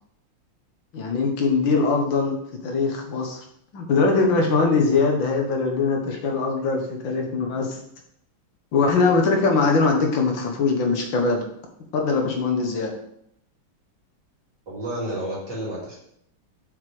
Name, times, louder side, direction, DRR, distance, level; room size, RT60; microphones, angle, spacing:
voice 1, 0.9-2.4 2.6-3.4 3.7-7.8 8.7-11.4 11.9-12.9, left 4 dB, 70° left, 2 dB, 1.8 m, -21 dB
voice 2, 14.7-16.0, right 1 dB, 55° right, -6 dB, 3.0 m, -30 dB
7.5 x 5.8 x 3.3 m, 0.72 s
omnidirectional pair, 2.2 m